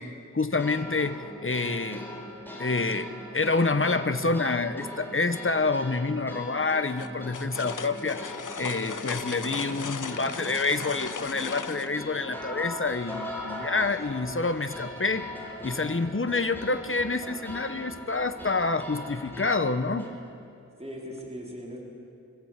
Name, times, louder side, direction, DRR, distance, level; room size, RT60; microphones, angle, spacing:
voice 1, 0.0-2.1 2.6-3.1 3.3-15.3 15.6-20.1, left 3 dB, 40° left, 10 dB, 1.2 m, -28 dB
sound 1, 0.6-20.1, left 1 dB, 5° left, 4.9 m, -40 dB
sound 2, 7.0-11.9, left 6 dB, 75° left, 0.7 m, -37 dB
voice 2, 9.6-10.5 20.8-21.8, equal, 20° right, -3 dB, 4.8 m, -41 dB
24.5 x 15.5 x 8.3 m, 2.5 s
wide cardioid pair, 50°, 31 cm